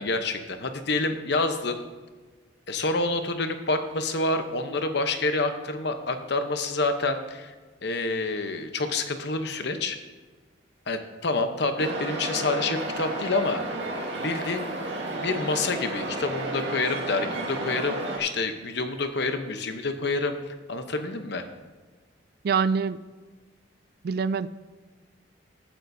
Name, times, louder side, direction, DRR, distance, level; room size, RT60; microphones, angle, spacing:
voice 1, 0.0-1.8 2.7-7.5 7.8-10.0 10.9-13.6 14.2-14.7 15.2-20.4 20.7-21.4, left 3 dB, 60° left, 7 dB, 0.9 m, -28 dB
sound 1, 11.8-18.2, right 2 dB, 75° right, 2.0 m, -32 dB
voice 2, 22.4-23.0 24.0-24.5, right 5 dB, 55° right, 16 dB, 0.3 m, -24 dB
15.0 x 9.1 x 2.7 m, 1.3 s
head